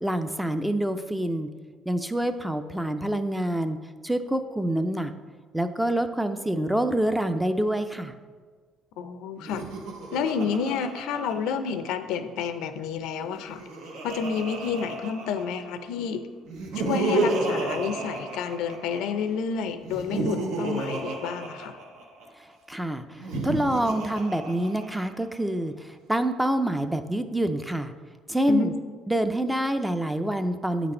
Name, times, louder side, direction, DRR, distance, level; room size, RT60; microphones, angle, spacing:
voice 1, 0.0-1.5 1.9-3.8 4.0-5.1 5.5-8.1 22.7-27.9 28.3-28.7 29.1-30.9, right 1 dB, 5° right, 9 dB, 0.4 m, -26 dB
voice 2, 9.0-9.7 10.1-13.6 14.0-16.2 16.7-21.8 28.5-28.8, left 6 dB, 85° left, 10 dB, 0.5 m, -30 dB
Laughter, 9.4-12.1 13.2-15.8 16.5-19.2 19.8-22.2 23.1-25.2, right 2 dB, 80° right, 0.9 m, -32 dB
8.5 x 4.0 x 4.3 m, 1.5 s
cardioid pair, 120°, 0 cm